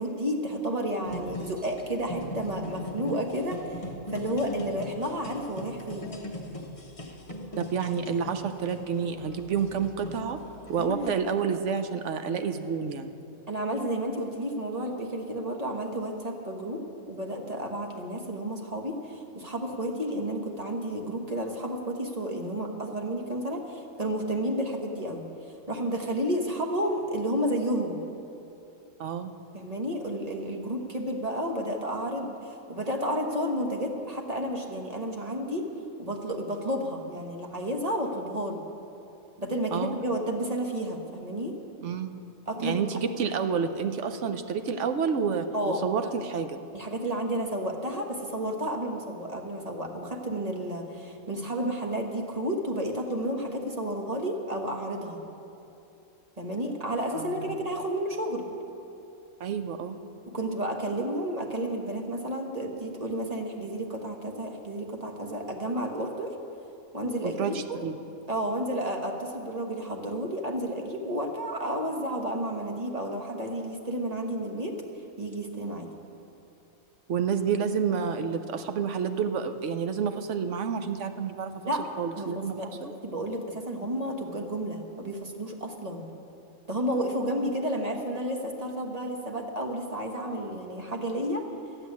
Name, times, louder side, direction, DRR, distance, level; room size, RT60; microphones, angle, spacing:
voice 1, 0.0-3.8 4.1-6.1 10.8-11.2 13.5-16.8 17.1-25.2 25.7-28.0 29.5-32.3 32.7-35.7 36.0-38.6 39.4-41.5 42.5-43.0 45.5-45.8 46.7-55.2 56.4-58.5 60.3-66.3 66.9-67.8 68.3-74.8 75.2-75.9 81.6-81.8 82.2-86.0 86.7-91.4, right 1 dB, 30° right, 2 dB, 1.4 m, -31 dB
sound 1, 1.0-11.1, equal, 25° left, 1.0 m, -40 dB
voice 2, 7.6-10.4 10.7-13.1 29.0-29.3 39.7-40.0 41.8-42.1 42.6-46.6 57.1-57.6 59.4-60.0 67.2-68.0 77.1-81.6 82.0-82.9, right 6 dB, 65° right, 8 dB, 1.1 m, -29 dB
13.0 x 8.1 x 9.6 m, 2.8 s
omnidirectional pair, 1.4 m